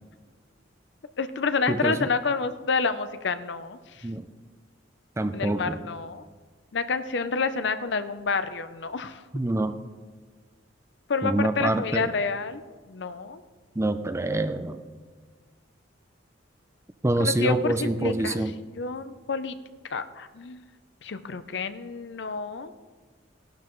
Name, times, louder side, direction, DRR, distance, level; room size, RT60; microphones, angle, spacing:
voice 1, 1.2-4.1 5.3-6.2 6.7-9.2 11.1-12.6 12.9-13.4 17.2-18.4 18.8-19.6 19.9-20.6 21.0-22.7, left 4 dB, 65° left, 11 dB, 0.6 m, -29 dB
voice 2, 5.2-5.8 9.3-9.8 11.2-12.1 13.8-14.8 17.0-18.5, right 1 dB, 15° right, 10 dB, 0.4 m, -26 dB
17.0 x 12.0 x 3.1 m, 1.5 s
head